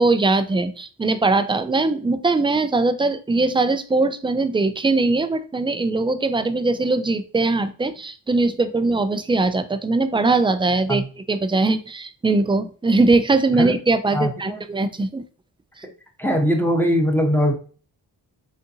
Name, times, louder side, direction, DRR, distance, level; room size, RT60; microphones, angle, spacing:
voice 1, 0.0-15.2, right 3 dB, 10° right, 9 dB, 0.4 m, -21 dB
voice 2, 14.1-14.6 16.2-17.5, equal, 5° left, 2 dB, 1.0 m, -20 dB
3.6 x 2.6 x 2.7 m, 0.37 s
supercardioid pair, 40°, 44 cm